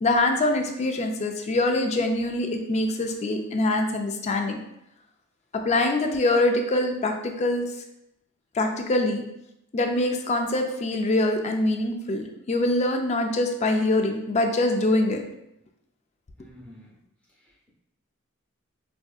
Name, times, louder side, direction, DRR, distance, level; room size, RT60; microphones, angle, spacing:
voice 1, 0.0-4.6 5.5-7.7 8.6-9.2 9.7-15.2, left 2 dB, 30° left, 4 dB, 0.4 m, -24 dB
voice 2, 16.4-17.0 17.4-17.7, equal, 5° left, -4 dB, 0.8 m, -50 dB
4.3 x 2.6 x 2.3 m, 0.84 s
head